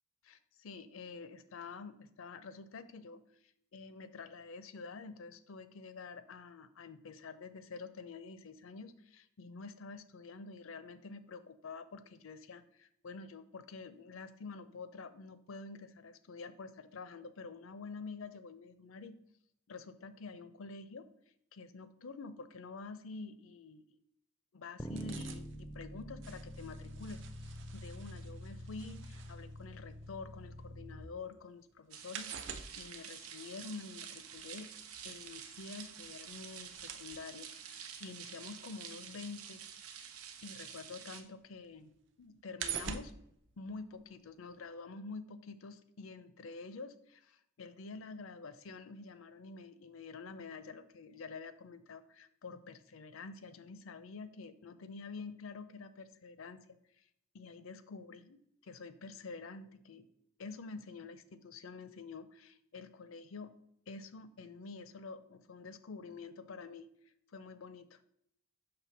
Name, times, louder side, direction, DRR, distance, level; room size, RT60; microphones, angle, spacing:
voice 1, 0.3-19.2 19.7-21.1 21.5-23.8 24.5-34.7 35.0-39.6 40.4-43.1 43.6-56.6 57.0-57.1 57.3-60.1 60.4-63.5 63.9-66.9 67.3-68.0, left 4 dB, 65° left, 12 dB, 0.5 m, -48 dB
sound 1, 24.8-31.1, equal, 10° left, 0.4 m, -46 dB
sound 2, 24.8-30.9 31.2-40.9 41.3-44.3 44.6-44.7, right 7 dB, 55° right, 0.5 m, -48 dB
sound 3, 31.9-41.2, right 8 dB, 85° right, 0.8 m, -49 dB
5.9 x 3.2 x 5.8 m, 0.73 s
head